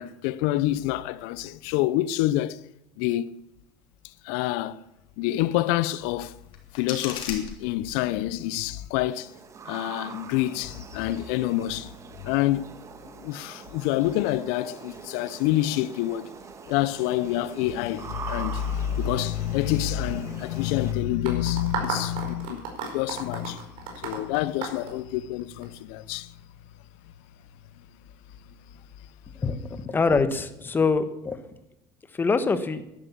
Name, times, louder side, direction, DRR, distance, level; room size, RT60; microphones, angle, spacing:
voice 1, 0.0-2.6 3.0-3.3 4.2-4.8 5.2-6.4 6.7-9.3 9.7-11.9 12.2-12.7 13.2-16.3 16.7-23.6 24.0-26.3, left 14 dB, 75° left, 0.8 m, -27 dB
sound 1, 6.3-8.3, left 7 dB, 60° left, 3.4 m, -38 dB
sound 2, 9.1-20.9, right 6 dB, 30° right, 1.6 m, -43 dB
sound 3, 21.2-25.6, right 5 dB, 65° right, 5.1 m, -33 dB
voice 2, 29.4-31.4 32.1-32.8, left 4 dB, 20° left, 1.5 m, -24 dB
11.5 x 11.5 x 8.5 m
supercardioid pair, 110°, 10 cm